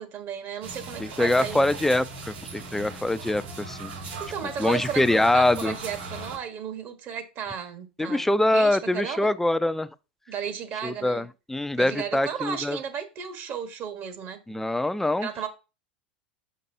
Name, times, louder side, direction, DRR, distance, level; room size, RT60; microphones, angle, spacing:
voice 1, 0.0-1.6 4.0-8.2 8.5-9.3 10.3-11.3 11.8-14.4 15.2-15.5, right 7 dB, 45° right, 1.3 m, -34 dB
sound 1, 0.6-6.4, right 3 dB, 80° right, 2.8 m, -38 dB
voice 2, 1.0-3.9 4.6-5.7 8.0-9.9 10.8-12.8 14.5-15.3, left 1 dB, 5° left, 0.4 m, -24 dB
6.6 x 5.4 x 2.7 m
hypercardioid pair, 90°, 5 cm